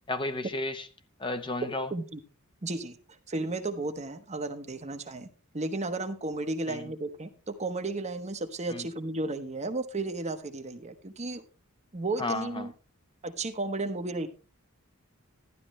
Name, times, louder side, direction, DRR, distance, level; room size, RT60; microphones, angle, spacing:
voice 1, 0.1-0.9 1.2-1.9 6.7-6.9 8.7-8.9 12.2-12.7, left 2 dB, 20° left, 0.8 m, -33 dB
voice 2, 1.9-2.2 2.6-3.0 3.3-5.3 5.5-11.4 11.9-12.7 13.2-14.3, right 2 dB, 30° right, 1.1 m, -33 dB
12.5 x 11.5 x 3.2 m
head